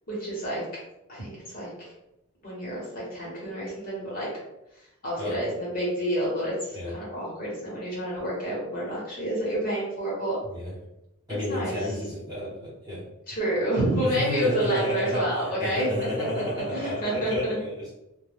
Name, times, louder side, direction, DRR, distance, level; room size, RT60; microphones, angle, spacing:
voice 1, 0.1-0.6 1.1-1.9 2.4-4.3 5.0-10.4 11.5-11.9 13.3-15.9 16.3-17.6, right 1 dB, 40° left, -6 dB, 1.0 m, -29 dB
voice 2, 11.3-13.0 14.0-17.9, left 1 dB, 20° right, -8 dB, 0.9 m, -31 dB
2.2 x 2.1 x 3.3 m, 0.89 s
head